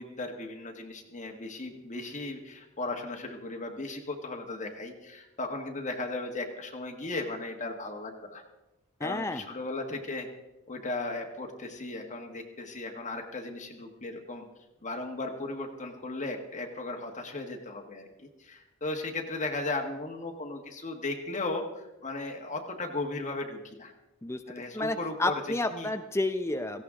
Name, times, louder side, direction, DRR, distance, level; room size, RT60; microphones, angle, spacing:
voice 1, 0.0-8.4 9.0-10.3 10.7-14.5 14.8-23.9 24.5-25.4 25.7-25.9, left 2 dB, 35° left, 2 dB, 1.3 m, -36 dB
voice 2, 9.0-9.4 24.2-26.8, left 2 dB, 10° left, 7 dB, 0.6 m, -31 dB
17.5 x 16.0 x 3.7 m, 1.0 s
head